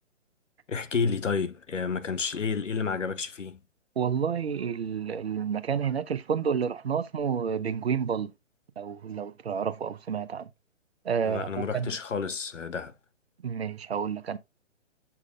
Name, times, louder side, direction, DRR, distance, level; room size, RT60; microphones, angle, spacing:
voice 1, 0.7-3.6 11.2-12.9, left 5 dB, 75° left, 0.9 m, -30 dB
voice 2, 4.0-8.3 8.8-10.5 11.0-12.0 13.4-14.4, right 7 dB, 55° right, 0.8 m, -30 dB
7.8 x 5.9 x 2.3 m
figure-of-eight pair, 130°, 37 cm